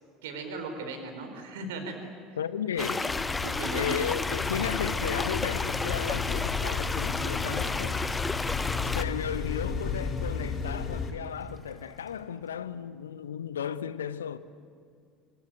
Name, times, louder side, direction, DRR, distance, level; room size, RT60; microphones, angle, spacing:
voice 1, 0.2-1.9 2.3-2.4 2.8-3.1 3.4-3.9, right 3 dB, 65° right, 4.4 m, -37 dB
voice 2, 2.4-3.0 3.7-8.0 8.9-14.4, left 8 dB, 75° left, 0.8 m, -34 dB
sound 1, 2.8-9.0, left 3 dB, 15° left, 0.9 m, -32 dB
sound 2, 3.1-11.1, left 5 dB, 35° left, 2.5 m, -33 dB
Toilet flush, 3.3-12.5, right 1 dB, ahead, 5.0 m, -53 dB
25.5 x 24.5 x 9.0 m
figure-of-eight pair, 65°, 0 cm